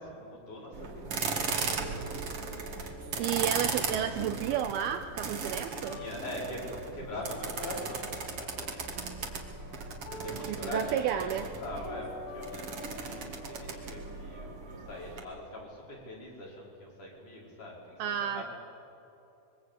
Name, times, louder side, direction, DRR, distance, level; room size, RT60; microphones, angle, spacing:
voice 1, 0.0-2.4 2.9-3.2 3.9-4.3 5.7-9.1 10.1-18.4, left 1 dB, 45° left, -4 dB, 6.6 m, -43 dB
sound 1, 0.7-15.2, right 5 dB, 45° right, 2.2 m, -37 dB
sound 2, 1.3-7.3 7.5-15.3, equal, 65° left, 4.7 m, -49 dB
voice 2, 3.2-6.0 10.5-11.5 18.0-18.4, right 10 dB, 75° right, 8 dB, 2.4 m, -31 dB
25.5 x 23.5 x 8.5 m, 2.8 s
omnidirectional pair, 4.9 m